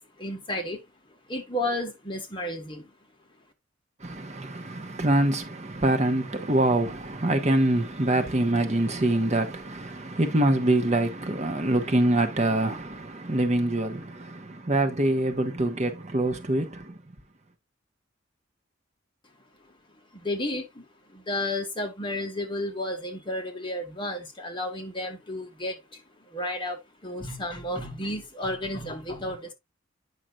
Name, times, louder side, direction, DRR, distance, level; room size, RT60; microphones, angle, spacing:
voice 1, 0.2-0.8 1.3-2.9 20.1-20.9 21.1-26.0 26.3-29.5, left 1 dB, 25° left, 1.5 m, -32 dB
voice 2, 4.0-17.0, right 1 dB, 35° right, 1.0 m, -25 dB
8.9 x 5.8 x 2.4 m
head